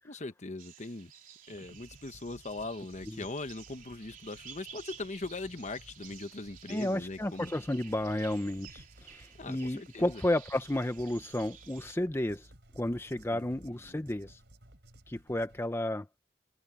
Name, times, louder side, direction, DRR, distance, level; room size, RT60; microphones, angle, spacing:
voice 1, 0.0-1.1 1.5-7.5 9.4-10.2 13.3-13.5 13.9-14.1, left 2 dB, 40° left, 1.0 m, -40 dB
sound 1, 0.6-12.0, right 8 dB, 50° right, 3.8 m, -53 dB
sound 2, 1.5-15.6, right 1 dB, 80° right, 4.1 m, -57 dB
voice 2, 6.7-12.5 12.7-14.4 15.1-16.2, left 1 dB, 15° left, 0.7 m, -32 dB
head